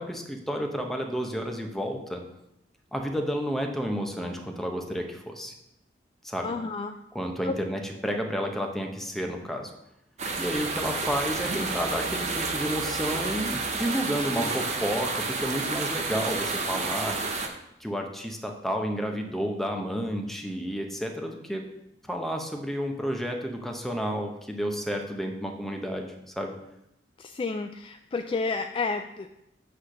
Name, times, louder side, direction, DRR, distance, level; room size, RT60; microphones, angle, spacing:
voice 1, 0.0-2.2 2.9-5.5 6.2-6.5 7.1-9.7 10.4-17.2 17.8-21.6 22.1-26.5, equal, ahead, 2 dB, 0.8 m, -31 dB
voice 2, 6.4-7.0 7.4-7.5 27.2-29.3, left 4 dB, 30° left, 6 dB, 0.3 m, -30 dB
sound 1, 10.2-17.5, right 3 dB, 40° right, 0.8 m, -30 dB
8.1 x 3.3 x 6.4 m, 0.82 s
head